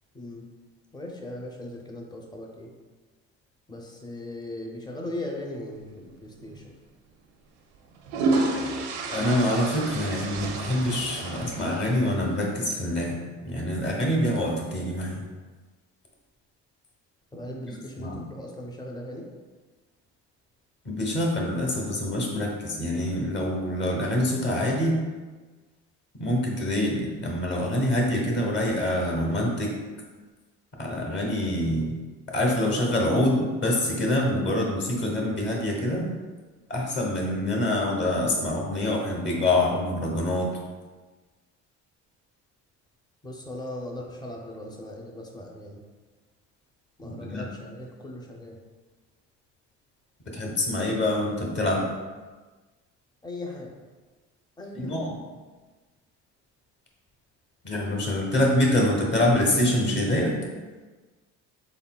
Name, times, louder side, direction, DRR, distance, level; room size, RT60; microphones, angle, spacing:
voice 1, 0.1-0.4 0.9-2.7 3.7-6.7 17.3-19.3 31.6-31.9 43.2-45.8 47.0-48.6 53.2-53.7 54.6-55.1, left 1 dB, 15° left, 0 dB, 0.6 m, -38 dB
sound 1, 6.4-6.6 7.7-12.4, right 3 dB, 85° right, 0.6 m, -30 dB
voice 2, 9.1-13.2 13.4-15.2 17.7-18.2 20.8-25.0 26.2-29.8 30.8-31.9 32.3-36.1 36.7-40.5 47.0-47.5 50.3-51.9 54.7-55.2 57.6-60.4, left 1 dB, 35° left, -1 dB, 1.0 m, -25 dB
4.1 x 3.5 x 2.2 m, 1.3 s
cardioid pair, 105°, 31 cm